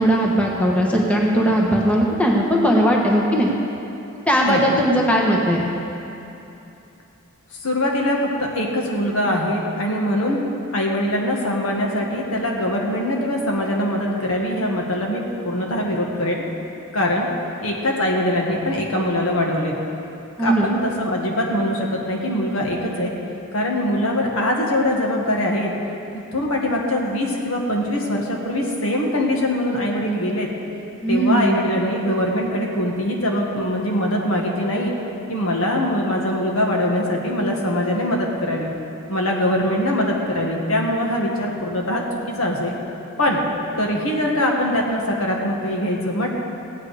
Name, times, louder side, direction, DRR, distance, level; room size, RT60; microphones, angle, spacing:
voice 1, 0.0-3.5 4.3-5.6 20.4-20.7 31.0-31.6, equal, 5° left, -2 dB, 1.2 m, -18 dB
voice 2, 4.4-4.8 7.6-10.4 10.7-16.4 16.9-17.3 17.6-19.8 20.4-23.1 23.5-25.7 26.1-30.5 31.1-34.9 35.3-38.7 39.1-42.8 43.2-43.4 43.8-46.3, left 1 dB, 70° left, -1 dB, 1.7 m, -22 dB
16.0 x 9.3 x 4.9 m, 2.9 s
head